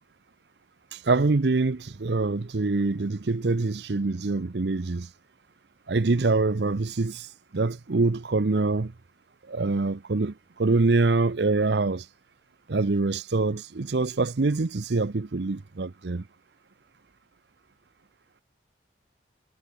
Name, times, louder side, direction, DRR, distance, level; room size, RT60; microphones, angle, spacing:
voice 1, 0.9-5.1 5.9-8.9 9.5-12.1 12.7-16.2, right 3 dB, 70° right, 0.7 m, -25 dB
head